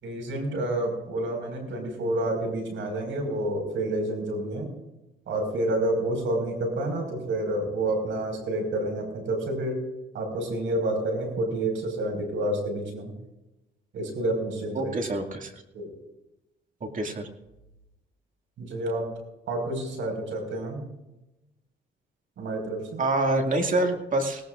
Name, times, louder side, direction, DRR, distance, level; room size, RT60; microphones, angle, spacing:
voice 1, 0.0-4.7 5.3-9.8 10.1-13.1 13.9-15.0 15.7-15.9 18.6-19.1 19.5-20.8 22.4-23.0, right 1 dB, 75° right, 3 dB, 5.3 m, -29 dB
voice 2, 14.8-15.5 16.8-17.3 23.0-24.5, right 2 dB, 40° right, 4 dB, 2.3 m, -26 dB
20.5 x 18.0 x 2.5 m, 0.99 s
cardioid pair, 90°, 20 cm